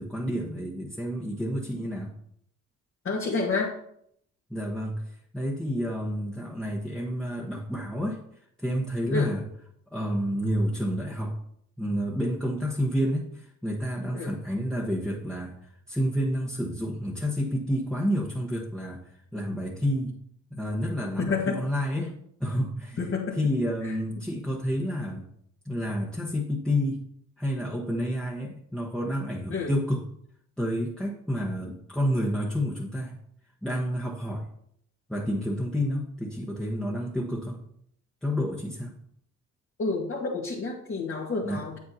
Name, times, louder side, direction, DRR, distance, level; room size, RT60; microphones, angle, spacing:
voice 1, 0.0-2.1 4.5-8.2 8.6-9.4 9.9-11.4 11.8-15.5 15.9-19.0 19.3-20.2 20.5-22.1 22.4-23.1 23.4-25.2 25.6-27.0 27.4-30.0 30.6-33.1 33.6-34.5 35.1-37.6 38.2-38.9 41.4-41.6, equal, 5° left, -5 dB, 1.2 m, -29 dB
voice 2, 3.0-3.7 9.1-9.3 14.1-14.3 21.2-21.6 23.0-23.4 23.8-23.9 29.5-29.7 39.8-41.8, left 4 dB, 45° left, -4 dB, 1.7 m, -29 dB
8.4 x 8.4 x 2.8 m, 0.70 s
cardioid pair, 90°, 30 cm